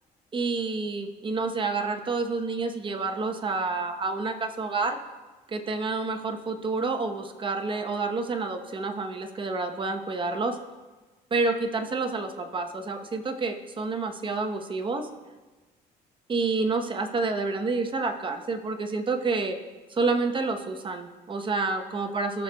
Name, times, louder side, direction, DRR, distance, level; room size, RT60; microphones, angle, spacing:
voice 1, 0.3-5.0 5.5-10.6 11.3-15.1 16.3-19.6 19.9-22.4, right 3 dB, 30° right, 5 dB, 0.9 m, -29 dB
16.0 x 6.6 x 2.3 m, 1.2 s
cardioid pair, 110°, 17 cm